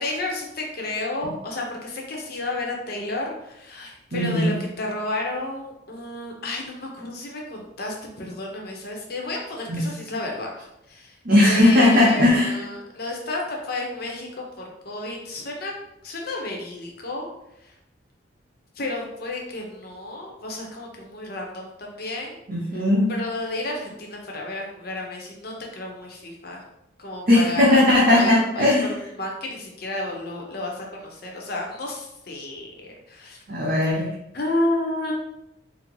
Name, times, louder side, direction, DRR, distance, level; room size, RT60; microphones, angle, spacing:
voice 1, 0.0-10.5 10.9-11.2 11.4-15.7 16.0-17.3 17.6-17.7 18.8-22.4 23.1-26.6 27.0-27.8 28.1-28.7 29.2-33.4 34.3-35.1, left 2 dB, 50° left, 0 dB, 0.7 m, -31 dB
voice 2, 4.1-4.5 9.7-9.8 11.2-12.6 22.5-23.1 27.3-28.9 33.5-34.1, left 1 dB, 50° right, -5 dB, 0.6 m, -18 dB
3.9 x 2.0 x 3.0 m, 0.84 s
head